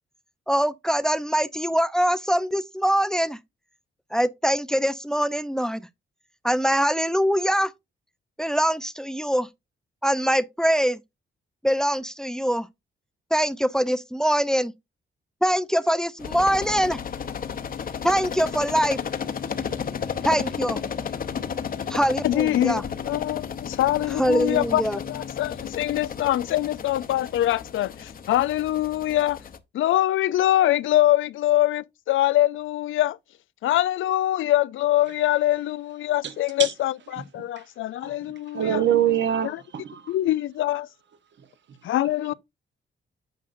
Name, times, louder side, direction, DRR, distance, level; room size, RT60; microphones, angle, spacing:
voice 1, 0.5-3.4 4.1-5.8 6.4-7.7 8.4-9.5 10.0-11.0 11.6-12.7 13.3-14.7 15.4-17.0 18.0-19.0 20.2-20.8 21.9-22.8 24.2-25.0, equal, 5° left, 0.4 m, -23 dB
sound 1, 16.2-29.6, left 7 dB, 45° left, 0.8 m, -33 dB
voice 2, 22.2-24.8 25.1-29.4 29.7-33.2 33.6-38.8 39.4-39.6 40.1-40.9 41.8-42.3, left 14 dB, 80° left, 0.4 m, -24 dB
voice 3, 38.5-40.0, right 10 dB, 65° right, 1.0 m, -23 dB
9.2 x 6.3 x 2.5 m
cardioid pair, 120°, 20 cm